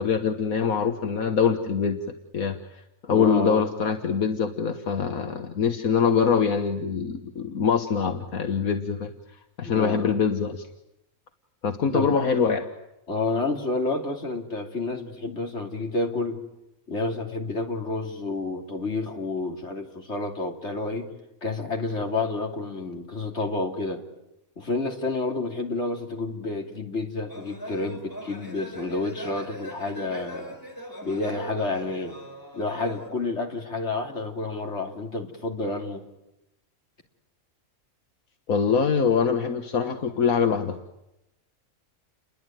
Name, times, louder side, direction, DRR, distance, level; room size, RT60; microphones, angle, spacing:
voice 1, 0.0-2.0 2.3-10.7 11.6-12.7 38.5-40.8, left 6 dB, 75° left, 6 dB, 1.8 m, -24 dB
voice 2, 3.1-3.7 9.6-10.2 11.9-12.2 13.1-16.4 16.9-21.1 21.4-24.0 24.6-30.6 31.0-32.2 32.5-36.0, left 3 dB, 50° left, 2 dB, 3.4 m, -29 dB
sound 1, 27.3-33.1, equal, 15° left, 4.5 m, -40 dB
29.5 x 21.5 x 9.3 m, 0.89 s
omnidirectional pair, 1.5 m